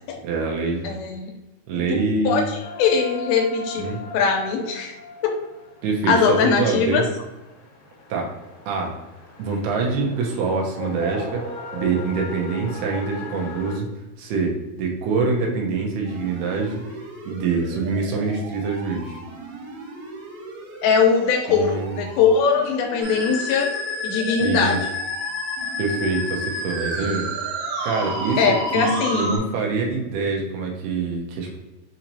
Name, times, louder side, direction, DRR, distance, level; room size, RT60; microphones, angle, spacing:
voice 1, 0.2-0.8 1.7-2.4 3.8-4.0 5.8-6.1 6.6-7.0 8.1-8.3 8.7-8.9 9.4-11.4 11.7-13.9 14.2-16.8 17.3-19.2 21.5-22.0 24.4-24.8 25.8-27.3 27.8-28.5 28.7-31.6, right 4 dB, 85° right, 0 dB, 2.8 m, -25 dB
voice 2, 0.8-1.3 1.7-2.0 2.3-2.4 2.8-3.9 4.1-5.0 5.2-5.3 6.1-7.0 20.8-23.7 24.0-24.8 28.4-29.3, left 5 dB, 80° left, 2 dB, 2.4 m, -20 dB
sound 1, 2.6-13.8, left 2 dB, 65° left, 2.4 m, -38 dB
sound 2, 16.1-28.7, right 2 dB, 50° right, 2.1 m, -40 dB
Musical instrument, 23.0-29.4, left 1 dB, 70° right, 2.1 m, -29 dB
6.4 x 2.9 x 2.7 m, 1.1 s
omnidirectional pair, 4.6 m